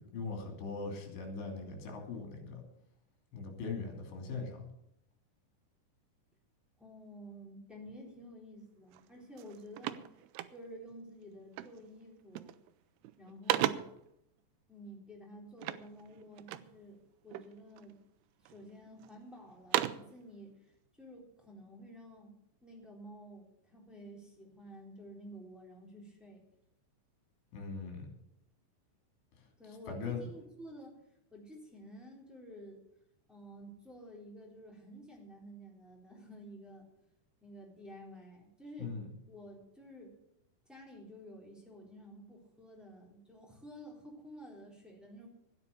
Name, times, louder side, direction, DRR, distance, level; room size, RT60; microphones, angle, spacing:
voice 1, 0.0-2.6 3.3-4.7 27.5-28.1 29.9-30.2 38.8-39.1, left 4 dB, 75° left, 3 dB, 5.0 m, -40 dB
voice 2, 6.8-10.0 10.5-12.6 13.2-14.0 14.7-17.0 17.2-18.0 18.4-22.3 22.6-26.4 29.6-31.0 31.3-32.8 33.3-36.9 37.4-38.9 39.3-40.1 40.6-45.3, equal, ahead, -2 dB, 2.9 m, -51 dB
sound 1, 8.9-9.1 9.4-10.9 11.5-11.9 12.2-12.7 13.0-14.1 15.6-16.8 17.3-17.9 18.5-19.1 19.5-20.2, right 14 dB, 80° right, 2.4 m, -36 dB
13.5 x 9.6 x 6.9 m, 0.78 s
omnidirectional pair, 5.0 m